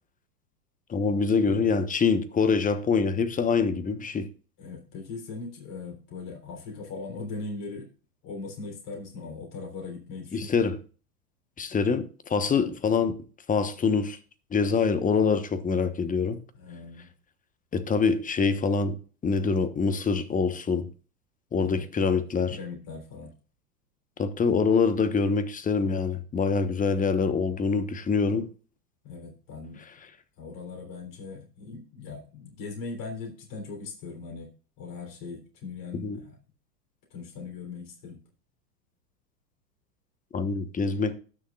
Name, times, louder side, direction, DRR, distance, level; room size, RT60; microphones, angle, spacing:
voice 1, 0.9-4.3 10.3-10.8 11.6-13.2 13.5-14.2 14.5-16.4 17.7-19.0 19.2-20.9 21.5-22.6 24.2-28.5 36.0-36.2 40.3-41.1, left 5 dB, 15° left, 1.1 m, -25 dB
voice 2, 4.6-7.9 8.2-10.6 16.5-17.1 21.6-21.9 22.5-23.3 29.0-29.8 30.4-34.5 34.8-36.4 37.1-38.2, left 4 dB, 40° left, 3.6 m, -39 dB
19.5 x 6.6 x 2.4 m
hypercardioid pair, 95°, 49 cm